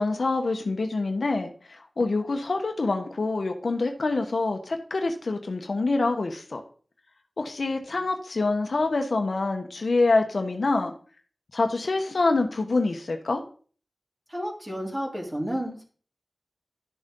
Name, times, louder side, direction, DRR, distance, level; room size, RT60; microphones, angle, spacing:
voice 1, 0.0-6.6 7.4-10.9 11.5-13.4, left 3 dB, 75° left, 5 dB, 1.2 m, -26 dB
voice 2, 14.3-15.8, equal, 15° right, -2 dB, 3.3 m, -31 dB
11.5 x 6.7 x 3.8 m, 0.42 s
wide cardioid pair, 75°, 0 cm